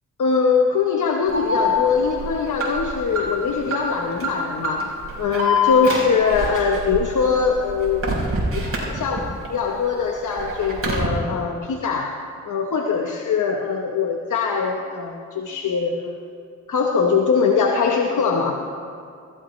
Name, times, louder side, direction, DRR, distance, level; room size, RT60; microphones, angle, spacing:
voice 1, 0.2-8.1 8.5-16.3 16.7-18.6, left 5 dB, 70° left, 2 dB, 0.9 m, -22 dB
Alarm, 1.3-9.5 9.8-11.1, left 2 dB, 45° right, 4.0 m, -26 dB
16.0 x 15.0 x 3.1 m, 2.3 s
cardioid pair, 85°, 32 cm